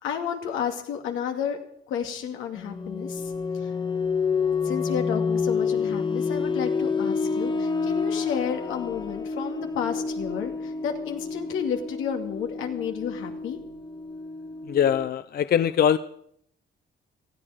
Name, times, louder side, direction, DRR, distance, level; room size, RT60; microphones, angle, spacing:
voice 1, 0.0-1.6 1.9-3.7 4.6-13.6, left 8 dB, 90° left, 4 dB, 2.3 m, -31 dB
sound 1, 2.6-15.1, left 5 dB, 25° left, 1.1 m, -29 dB
voice 2, 14.7-16.0, left 9 dB, 50° left, 13 dB, 0.6 m, -22 dB
19.0 x 14.0 x 5.1 m, 0.67 s
cardioid pair, 90°, 20 cm